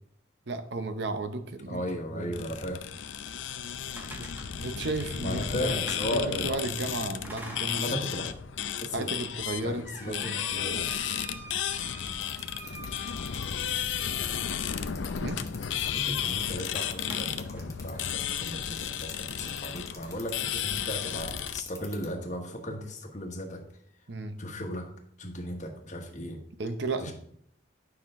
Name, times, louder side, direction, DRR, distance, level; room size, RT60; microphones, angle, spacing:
voice 1, 0.5-2.5 4.1-4.3 4.6-5.7 6.1-7.9 8.9-10.9 15.2-15.4 18.1-18.2 24.1-24.4 26.6-27.1, right 2 dB, 60° right, 9 dB, 0.8 m, -34 dB
voice 2, 1.7-2.8 5.2-6.6 7.7-8.3 8.8-9.1 9.6-10.9 15.9-23.6 24.4-24.9 25.2-26.4 27.0-27.1, equal, 40° left, 3 dB, 1.3 m, -36 dB
sound 1, 2.3-21.6, left 9 dB, 75° left, 0.5 m, -33 dB
sound 2, 3.6-6.7 7.2-8.2 8.6-8.7 9.3-14.0 16.1-16.4 16.7-17.7, equal, 10° right, 1.4 m, -46 dB
sound 3, 12.2-22.1, left 6 dB, 15° left, 1.2 m, -44 dB
9.7 x 5.7 x 3.7 m, 0.68 s
head